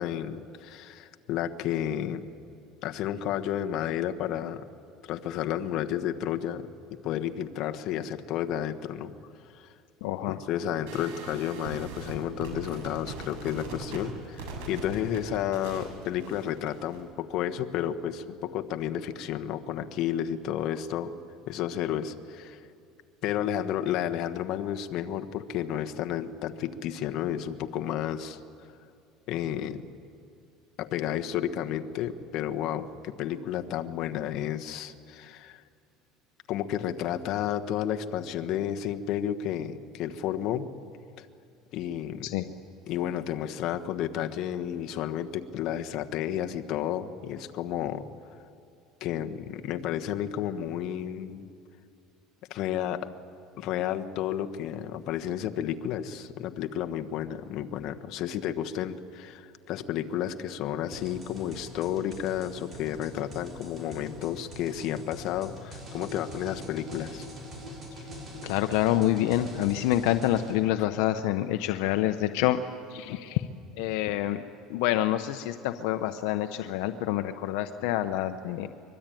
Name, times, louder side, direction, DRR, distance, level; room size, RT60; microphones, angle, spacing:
voice 1, 0.0-2.2 2.8-4.6 5.1-6.7 7.0-9.1 9.5-9.7 10.3-21.1 21.5-22.6 23.2-28.4 29.3-29.8 30.8-35.6 36.5-40.7 41.2-41.3 41.7-42.3 42.9-48.0 49.0-51.5 52.5-53.1 53.6-67.2, left 10 dB, 55° left, 6 dB, 1.3 m, -31 dB
voice 2, 10.0-10.4 42.2-42.5 67.9-68.0 68.4-72.6 72.9-73.5 73.8-74.4 74.7-78.7, left 13 dB, 75° left, 8 dB, 0.9 m, -27 dB
sound 1, 10.9-17.0, right 3 dB, 85° right, 6.9 m, -41 dB
sound 2, 60.9-70.5, equal, 25° right, 6.9 m, -43 dB
24.0 x 22.5 x 9.2 m, 2.5 s
cardioid pair, 135°, 0 cm